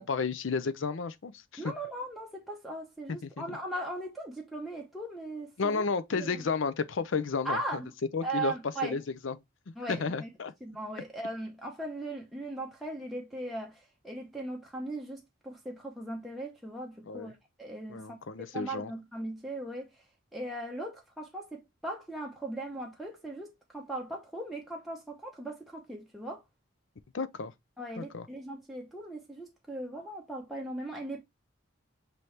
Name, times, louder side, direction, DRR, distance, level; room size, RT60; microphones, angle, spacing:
voice 1, 0.0-1.7 3.2-3.6 5.6-7.6 8.1-8.5 8.8-9.4 9.9-10.5 17.1-17.3 17.9-18.9 27.1-27.5 28.0-28.3, left 4 dB, 65° left, 0.5 m, -32 dB
voice 2, 1.6-5.8 6.1-6.4 7.4-7.9 8.2-9.0 9.8-10.3 10.6-20.0 20.3-26.4 27.8-31.2, right 2 dB, ahead, 0.7 m, -39 dB
6.0 x 2.8 x 3.2 m
head